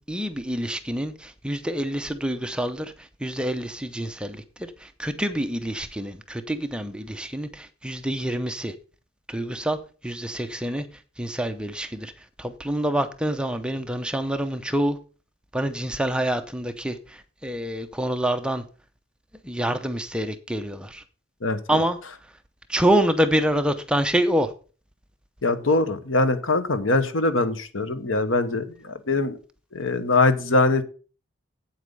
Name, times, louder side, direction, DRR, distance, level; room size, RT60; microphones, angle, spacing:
voice 1, 0.0-8.7 9.3-9.8 10.0-10.9 11.2-15.0 15.5-18.6 19.4-21.0 21.7-22.0 22.7-24.5, right 1 dB, 5° right, 0.7 m, -26 dB
voice 2, 21.4-21.8 25.4-29.4 29.7-30.8, left 2 dB, 80° left, 1.1 m, -22 dB
8.5 x 7.9 x 5.3 m
head